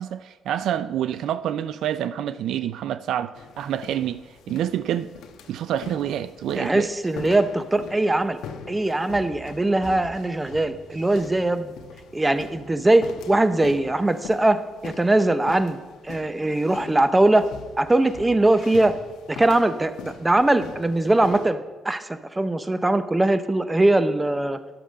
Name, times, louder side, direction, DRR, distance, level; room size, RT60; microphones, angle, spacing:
voice 1, 0.0-5.1 5.5-6.9, right 10 dB, 80° right, 0.3 m, -27 dB
sound 1, 3.3-21.5, left 5 dB, 80° left, 1.1 m, -42 dB
voice 2, 6.6-8.4 8.7-11.7 12.1-15.8 16.0-17.5 17.8-19.0 19.3-21.6 21.8-24.6, right 2 dB, 15° right, 0.7 m, -21 dB
10.0 x 6.8 x 6.3 m
cardioid pair, 90°, 0 cm